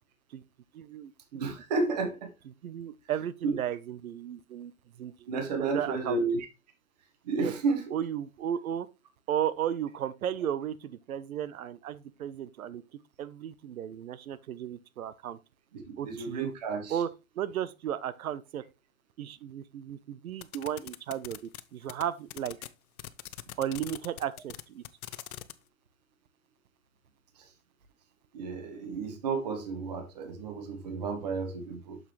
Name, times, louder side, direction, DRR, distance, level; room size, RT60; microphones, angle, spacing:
voice 1, 0.7-1.4 2.6-4.7 5.0-5.1 5.6-6.2 7.4-7.5 7.9-8.9 9.3-12.8 13.2-15.4 16.0-16.5 16.9-17.1 17.4-18.6 19.2-22.6 23.6-24.8, right 10 dB, 85° right, 0.8 m, -34 dB
voice 2, 1.3-2.3 3.4-3.6 5.3-6.5 7.2-7.9 15.7-17.0 27.4-27.5 28.3-32.0, right 4 dB, 30° right, 1.0 m, -32 dB
sound 1, 20.4-21.6 21.9-22.0 22.3-22.7 23.0-25.5, left 12 dB, 90° left, 0.8 m, -41 dB
6.7 x 6.0 x 3.2 m
hypercardioid pair, 180°, 41 cm